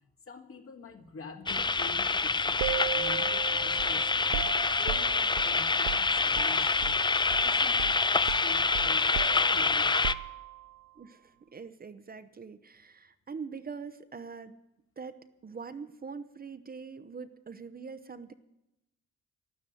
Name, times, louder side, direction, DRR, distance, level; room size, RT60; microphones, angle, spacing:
voice 1, 0.2-7.2 7.4-10.2, left 3 dB, 50° left, 4 dB, 2.2 m, -47 dB
sound 1, 1.5-10.1, left 4 dB, 15° left, 0.5 m, -26 dB
sound 2, 2.6-7.0 7.3-7.5 7.8-10.8, right 17 dB, 70° right, 0.5 m, -37 dB
voice 2, 11.0-14.6 15.0-18.3, right 5 dB, 30° right, 11 dB, 0.8 m, -43 dB
12.5 x 12.0 x 9.1 m, 0.91 s
cardioid pair, 90°, 30 cm